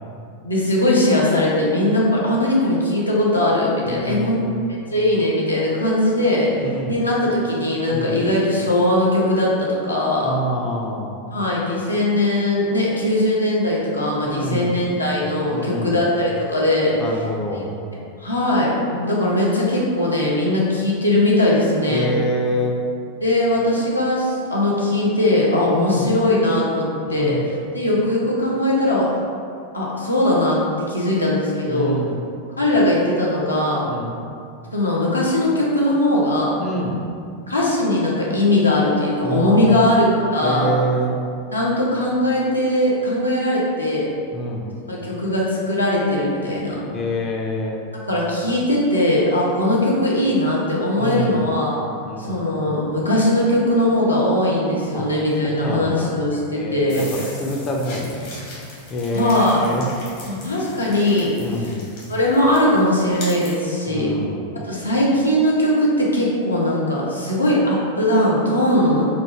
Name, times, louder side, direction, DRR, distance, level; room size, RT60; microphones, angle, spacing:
voice 1, 0.4-4.4 4.9-10.3 11.3-17.2 17.5-17.6 18.2-22.1 23.2-29.1 29.7-30.6 30.9-32.0 32.6-33.9 34.7-36.6 37.5-40.7 41.5-44.1 44.9-46.8 48.1-51.8 52.2-57.1 59.1-59.7 60.2-61.7 62.1-64.2 64.7-69.1, left 1 dB, 80° left, -5 dB, 0.6 m, -20 dB
voice 2, 3.9-4.6 6.6-7.0 7.9-8.2 10.2-11.1 14.2-14.8 15.5-16.0 17.0-17.8 21.9-22.8 25.7-26.1 27.1-27.4 31.7-32.2 33.9-34.1 36.6-37.0 39.2-40.0 40.4-41.3 44.3-44.7 46.9-47.9 51.0-51.5 52.1-52.4 54.9-55.1 55.4-56.2 56.5-57.1 57.4-59.8 61.4-61.9 63.9-64.4, equal, 25° left, 0 dB, 0.4 m, -26 dB
sound 1, 56.9-63.6, left 2 dB, 50° left, 0.9 m, -39 dB
2.9 x 2.2 x 3.0 m, 2.4 s
figure-of-eight pair, 90°, 0 cm